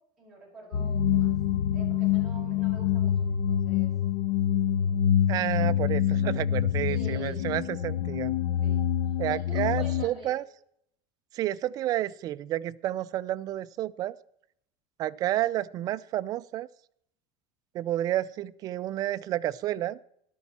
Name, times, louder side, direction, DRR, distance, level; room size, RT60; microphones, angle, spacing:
voice 1, 0.2-1.3 1.7-3.9 4.7-5.2 6.9-7.4 8.5-8.8 9.3-10.3, right 1 dB, 5° right, -7 dB, 6.6 m, -46 dB
sound 1, 0.7-10.1, left 9 dB, 85° left, 1.1 m, -26 dB
voice 2, 5.3-8.3 9.2-10.4 11.3-14.1 15.0-16.7 17.7-20.0, right 13 dB, 30° right, 14 dB, 0.4 m, -30 dB
14.0 x 12.0 x 4.2 m, 0.71 s
cardioid pair, 170°, 13 cm